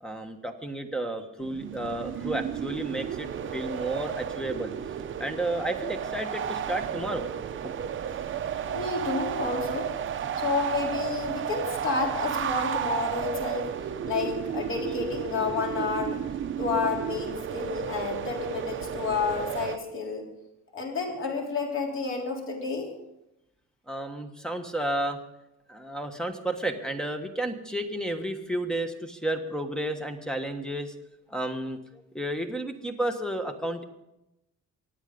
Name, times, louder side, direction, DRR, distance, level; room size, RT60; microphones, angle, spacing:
voice 1, 0.0-4.7 5.2-7.3 7.6-7.8 23.9-25.2 25.7-30.9 31.3-33.8, right 1 dB, ahead, 6 dB, 1.3 m, -32 dB
sound 1, 1.4-19.8, right 8 dB, 35° right, 0.7 m, -33 dB
voice 2, 8.7-9.9 10.4-13.7 14.1-16.2 16.6-20.2 20.7-22.9, left 4 dB, 40° left, 1 dB, 3.6 m, -30 dB
24.5 x 9.1 x 5.3 m, 0.90 s
cardioid pair, 165°, 33 cm